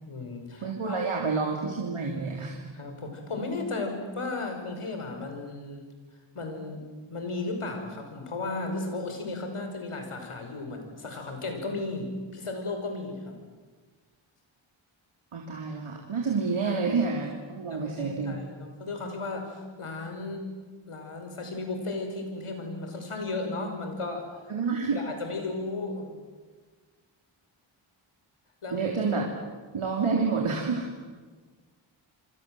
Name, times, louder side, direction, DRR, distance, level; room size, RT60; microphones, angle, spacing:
voice 1, 0.0-1.0 2.7-5.9 6.3-6.8 7.1-13.4 16.2-16.3 16.6-16.7 17.7-20.6 20.9-24.5 24.9-26.2 28.6-28.9, left 3 dB, 90° left, 4 dB, 5.7 m, -35 dB
voice 2, 0.6-2.6 15.3-18.4 24.5-25.0 28.7-29.2 29.7-30.9, right 4 dB, 85° right, -1 dB, 3.5 m, -28 dB
27.0 x 25.0 x 7.8 m, 1.4 s
wide cardioid pair, 90°, 49 cm